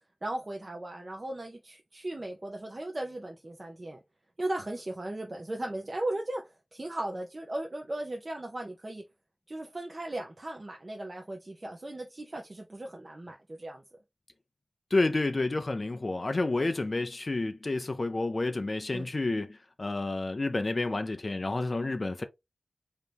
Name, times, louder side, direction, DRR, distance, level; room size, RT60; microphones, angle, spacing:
voice 1, 0.2-4.0 4.4-6.4 6.7-9.0 9.5-13.8 18.9-19.1, right 1 dB, 40° right, 0.7 m, -37 dB
voice 2, 14.9-22.2, left 2 dB, 45° left, 0.4 m, -30 dB
4.0 x 2.8 x 3.3 m
wide cardioid pair, 75°, 0 cm